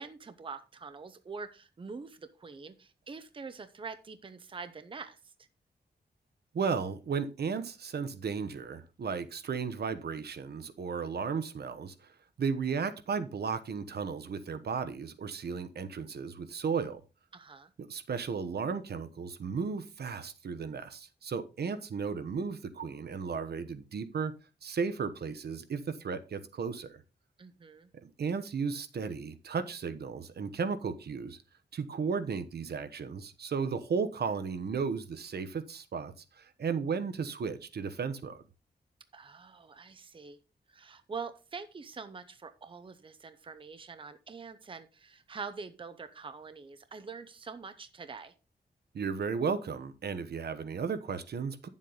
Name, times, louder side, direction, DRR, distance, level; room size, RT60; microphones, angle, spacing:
voice 1, 0.0-5.3 17.3-17.7 27.4-27.9 39.1-40.4 40.7-48.3, right 5 dB, 30° right, 0.7 m, -45 dB
voice 2, 6.5-12.1 12.4-17.0 17.8-24.3 24.6-27.0 28.0-31.4 31.7-38.4 48.9-51.7, right 5 dB, 70° right, 1.0 m, -34 dB
10.5 x 7.4 x 4.0 m
wide cardioid pair, 165°, 17 cm